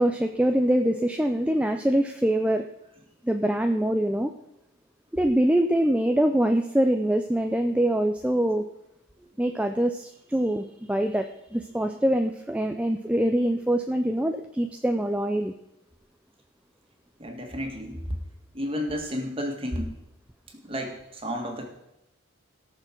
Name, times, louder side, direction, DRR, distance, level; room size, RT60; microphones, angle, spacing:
voice 1, 0.0-2.7 3.2-4.3 5.1-8.7 9.4-15.5, right 1 dB, 5° right, 5 dB, 0.5 m, -24 dB
voice 2, 17.2-18.2 18.5-19.9 20.6-21.7, equal, 25° right, 3 dB, 2.0 m, -32 dB
17.0 x 6.7 x 6.2 m, 0.87 s
head